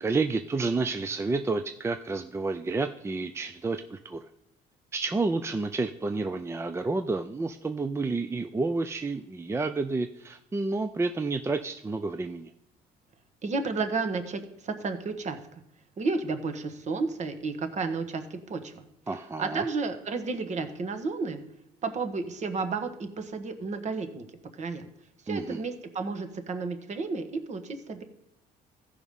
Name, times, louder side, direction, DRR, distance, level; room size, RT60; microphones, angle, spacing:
voice 1, 0.0-4.3 4.9-12.5 19.1-19.6 25.3-25.6, right 3 dB, 15° right, 7 dB, 0.5 m, -30 dB
voice 2, 13.4-15.6 16.0-18.8 19.4-21.4 21.8-24.3 24.5-24.9 25.2-28.0, right 4 dB, 45° right, 8 dB, 1.4 m, -32 dB
14.5 x 5.0 x 5.4 m, 0.79 s
cardioid pair, 110°, 17 cm